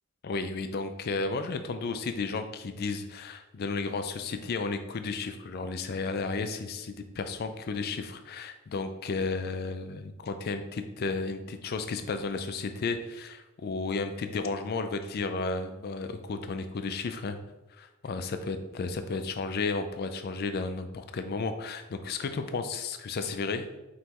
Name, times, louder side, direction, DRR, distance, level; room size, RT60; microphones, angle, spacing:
voice 1, 0.2-17.4 17.8-23.7, left 4 dB, 45° left, 8 dB, 0.4 m, -33 dB
5.5 x 3.0 x 2.9 m, 1.0 s
head